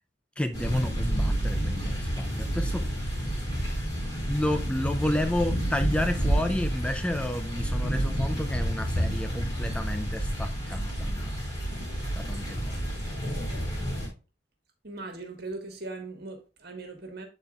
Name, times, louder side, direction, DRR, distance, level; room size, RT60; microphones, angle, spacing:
voice 1, 0.4-3.1 4.3-11.3 12.1-12.8, left 1 dB, 5° left, 0.3 m, -31 dB
sound 1, 0.5-14.1, right 1 dB, 20° left, 4.4 m, -29 dB
voice 2, 14.8-17.3, right 3 dB, 55° right, 1.6 m, -39 dB
12.0 x 4.4 x 2.3 m
head